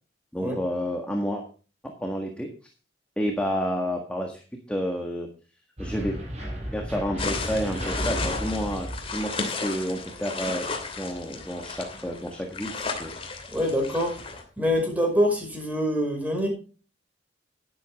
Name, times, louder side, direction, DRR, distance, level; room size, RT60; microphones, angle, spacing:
voice 1, 0.3-1.4 1.8-2.5 3.2-4.4 4.7-5.3 5.8-6.2 6.7-10.6 11.0-13.1, equal, 5° left, 1 dB, 1.7 m, -30 dB
sound 1, 5.8-9.4, equal, 40° right, 6.2 m, -33 dB
sound 2, 7.2-14.4, left 3 dB, 30° left, 2.7 m, -34 dB
voice 2, 13.5-14.1 14.6-16.5, equal, 10° right, 1 dB, 5.6 m, -25 dB
12.0 x 11.5 x 3.6 m, 0.35 s
head